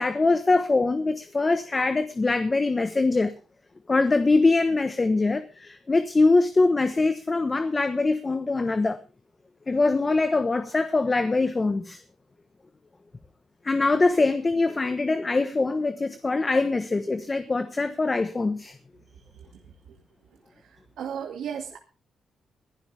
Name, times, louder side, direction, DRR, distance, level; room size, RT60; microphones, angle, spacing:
voice 1, 0.0-3.3 3.9-9.0 9.7-12.0 13.6-18.7, left 3 dB, 25° left, 10 dB, 1.2 m, -23 dB
voice 2, 20.6-21.8, right 8 dB, 85° right, 3 dB, 2.2 m, -36 dB
21.5 x 11.5 x 3.4 m, 0.33 s
cardioid pair, 125°, 0 cm